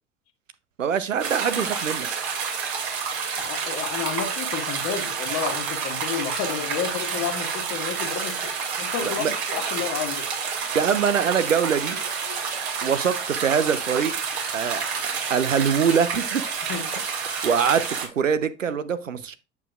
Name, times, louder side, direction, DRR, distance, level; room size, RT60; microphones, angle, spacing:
voice 1, 0.8-2.1 9.2-9.3 10.7-12.0 12.8-14.1 14.5-16.4 17.4-19.4, right 7 dB, 85° right, 0.7 m, -23 dB
sound 1, 1.2-18.1, right 5 dB, 60° right, 2.5 m, -29 dB
voice 2, 3.4-10.3 16.7-16.9, left 7 dB, 45° left, 1.5 m, -31 dB
8.2 x 7.1 x 2.4 m
figure-of-eight pair, 75°, 37 cm